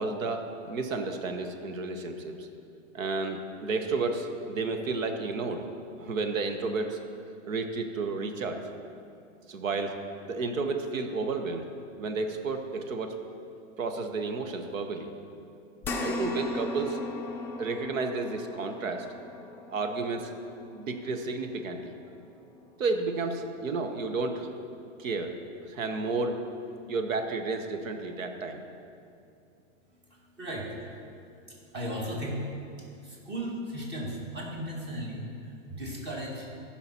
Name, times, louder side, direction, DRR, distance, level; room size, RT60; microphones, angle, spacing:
voice 1, 0.0-2.5 2.9-5.7 6.0-7.0 7.5-8.6 9.5-10.0 10.3-11.7 12.0-13.2 13.8-15.1 16.0-17.0 17.6-19.1 19.7-20.3 20.7-22.0 22.8-24.5 25.0-25.4 25.7-26.4 26.9-28.6, right 3 dB, 85° right, 6 dB, 1.1 m, -31 dB
sound 1, 15.8-24.4 24.9-25.0 26.4-26.5, left 2 dB, 5° left, 0.4 m, -39 dB
voice 2, 30.1-31.0 31.5-36.5, equal, 25° right, -2 dB, 2.2 m, -36 dB
15.0 x 5.9 x 4.3 m, 2.5 s
hypercardioid pair, 130°, 39 cm